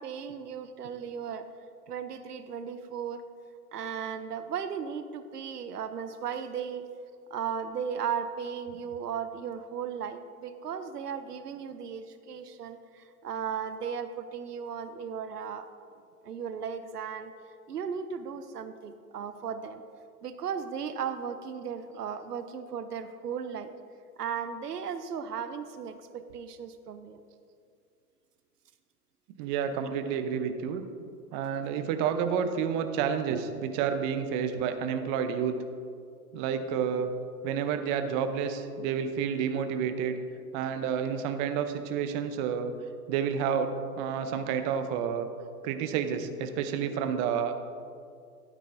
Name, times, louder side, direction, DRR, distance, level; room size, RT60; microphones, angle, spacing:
voice 1, 0.0-1.5 1.9-3.2 3.7-6.8 7.3-15.7 16.2-17.3 17.7-19.8 20.2-23.7 24.2-27.2 29.8-29.9, right 7 dB, 90° right, 10 dB, 0.7 m, -36 dB
voice 2, 29.4-30.8 31.3-35.5 36.3-37.1 37.4-40.2 40.5-42.7 43.1-45.3 45.6-47.5, right 7 dB, 35° right, 8 dB, 0.7 m, -30 dB
12.0 x 9.3 x 2.6 m, 2.3 s
hypercardioid pair, 110°, 45 cm